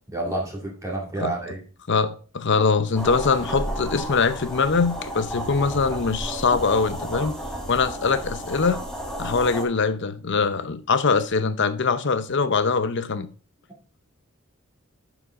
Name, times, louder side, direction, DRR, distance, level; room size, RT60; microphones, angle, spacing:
voice 1, 0.1-1.6, right 2 dB, 15° right, 2.2 m, -29 dB
voice 2, 1.9-7.4 7.7-8.8 9.2-13.3, left 4 dB, 55° left, 0.7 m, -23 dB
sound 1, 2.9-9.6, right 1 dB, 5° left, 1.4 m, -32 dB
11.0 x 5.1 x 3.6 m
head